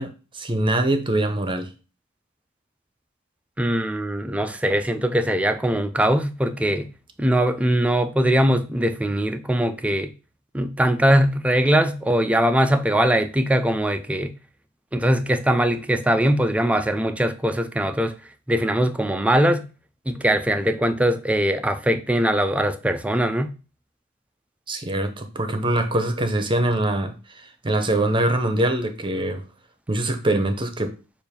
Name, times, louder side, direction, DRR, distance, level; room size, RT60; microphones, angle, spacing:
voice 1, 0.0-1.7 24.7-29.4 29.9-30.9, right 1 dB, 25° right, 0.8 m, -23 dB
voice 2, 3.6-6.9 7.2-10.1 10.5-14.3 14.9-18.1 18.5-19.7 20.1-23.5, right 1 dB, 5° right, 0.4 m, -21 dB
6.9 x 2.6 x 5.1 m
head